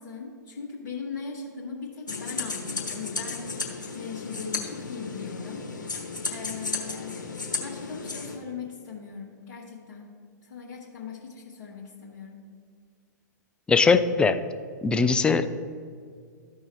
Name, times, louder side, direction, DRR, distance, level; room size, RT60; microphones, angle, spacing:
voice 1, 0.0-5.8 6.3-10.1 10.4-12.4, left 5 dB, 50° left, -6 dB, 1.5 m, -39 dB
sound 1, 2.1-8.4, left 4 dB, 80° left, 1.3 m, -34 dB
voice 2, 13.7-14.4 14.8-15.5, left 4 dB, 10° left, 10 dB, 0.3 m, -20 dB
13.5 x 5.4 x 3.1 m, 2.2 s
figure-of-eight pair, 105°, 10 cm